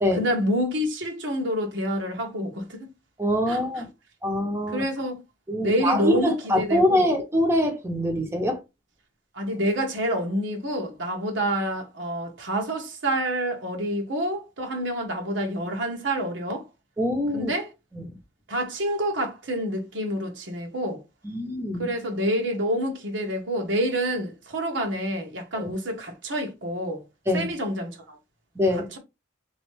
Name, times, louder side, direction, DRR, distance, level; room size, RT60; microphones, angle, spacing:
voice 1, 0.2-2.9 3.5-3.8 4.7-5.2 5.6-7.1 9.3-16.7 17.3-17.7 18.5-21.0 21.8-27.0 27.3-28.2, equal, 80° right, 1.3 m, -28 dB
voice 2, 3.2-3.9 4.2-4.8 5.5-8.6 17.0-17.5 17.9-18.2 21.2-21.9 25.6-25.7 27.3-27.5 28.6-28.9, left 1 dB, 15° right, 0.8 m, -24 dB
4.0 x 3.1 x 3.2 m
head